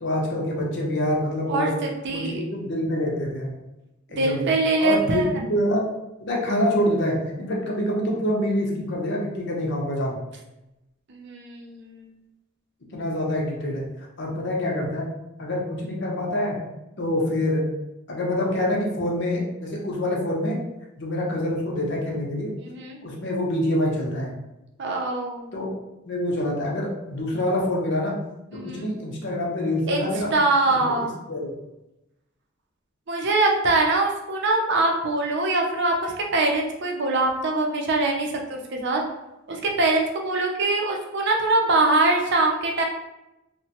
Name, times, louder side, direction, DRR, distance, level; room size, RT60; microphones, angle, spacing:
voice 1, 0.0-1.7 2.1-3.5 4.1-4.5 4.8-5.9 6.2-10.2 12.9-13.8 14.2-15.1 15.4-16.6 17.0-17.6 18.1-20.6 21.0-22.5 23.0-24.4 25.5-25.7 26.1-28.2 28.6-30.3 30.7-31.6, left 1 dB, 55° left, -1 dB, 0.7 m, -26 dB
voice 2, 1.5-2.4 4.1-5.3 11.1-12.1 22.6-23.0 24.8-25.5 28.5-28.9 29.9-31.1 33.1-39.0 39.5-42.8, right 2 dB, 55° right, 0 dB, 0.5 m, -23 dB
3.0 x 2.1 x 2.8 m, 0.93 s
head